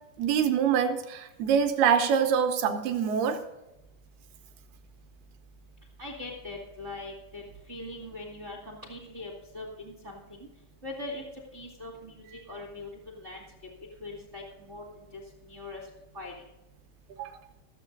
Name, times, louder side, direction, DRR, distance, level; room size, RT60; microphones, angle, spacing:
voice 1, 0.2-3.4 17.2-17.3, right 7 dB, 75° right, 7 dB, 2.5 m, -25 dB
voice 2, 6.0-7.4 7.7-10.5 10.8-11.2 11.5-13.4 14.0-15.8 16.1-16.3, left 2 dB, 50° right, -1 dB, 0.8 m, -41 dB
15.0 x 7.2 x 5.2 m, 0.96 s
omnidirectional pair, 5.1 m